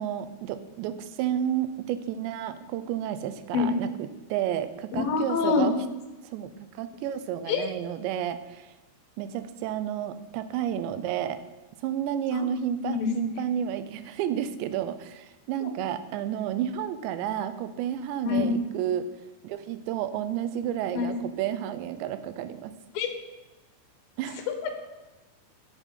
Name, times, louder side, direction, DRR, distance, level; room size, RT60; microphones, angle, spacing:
voice 1, 0.0-5.7 6.2-8.7 9.2-11.4 11.8-19.1 19.4-22.7 24.2-24.5, right 10 dB, 85° right, 12 dB, 3.0 m, -31 dB
voice 2, 4.9-5.7 7.5-7.7 12.3-12.4 12.8-13.4 15.6-15.7 18.2-18.5 20.9-21.1 22.9-23.1 24.5-24.7, left 5 dB, 65° left, 6 dB, 2.8 m, -26 dB
9.6 x 8.4 x 8.3 m, 1.1 s
omnidirectional pair, 5.0 m